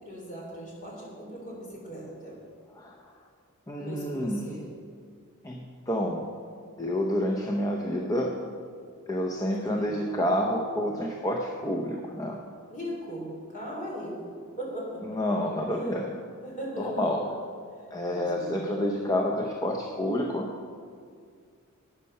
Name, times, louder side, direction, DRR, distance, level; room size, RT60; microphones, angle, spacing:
voice 1, 0.0-2.4 3.8-4.6 9.7-10.0 12.7-15.0 15.6-16.1 16.4-17.1 18.1-18.6, equal, 35° left, -3 dB, 3.6 m, -38 dB
voice 2, 3.7-4.4 5.4-6.2 6.8-8.3 9.1-12.4 15.1-16.1 16.8-17.2 17.9-20.5, equal, 15° left, 0 dB, 0.7 m, -28 dB
12.0 x 8.9 x 5.5 m, 2.1 s
head